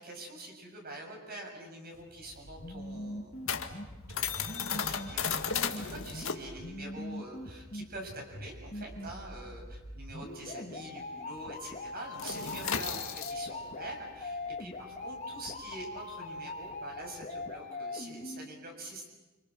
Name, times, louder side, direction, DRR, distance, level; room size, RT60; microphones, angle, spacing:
voice 1, 0.0-3.6 4.1-19.1, right 1 dB, 50° right, 1 dB, 7.1 m, -45 dB
sound 1, 1.9-10.9 11.2-11.4 11.7-17.5, left 7 dB, 80° left, 2.0 m, -37 dB
sound 2, 2.5-18.5, left 2 dB, 40° left, 3.0 m, -42 dB
29.5 x 27.0 x 6.3 m, 1.1 s
head